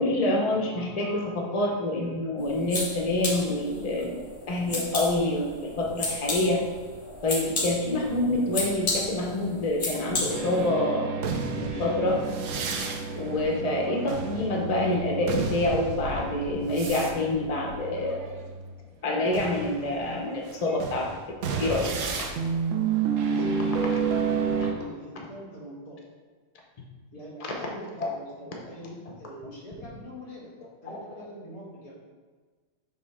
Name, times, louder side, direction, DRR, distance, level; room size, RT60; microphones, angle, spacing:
voice 1, 0.0-4.2 4.5-6.6 7.2-11.1 11.5-12.2 13.1-18.3 19.0-21.1 21.6-21.9 27.5-27.6 28.0-28.1, left 1 dB, 75° left, -1 dB, 0.3 m, -27 dB
sound 1, 2.4-10.7, left 2 dB, 35° left, 1.0 m, -33 dB
sound 2, 10.3-18.8 19.3-24.7, right 5 dB, 60° right, 0.8 m, -30 dB
voice 2, 23.3-26.0 27.1-30.5 30.8-31.9, equal, 50° left, -6 dB, 2.4 m, -43 dB
7.4 x 3.2 x 4.8 m, 1.4 s
omnidirectional pair, 1.9 m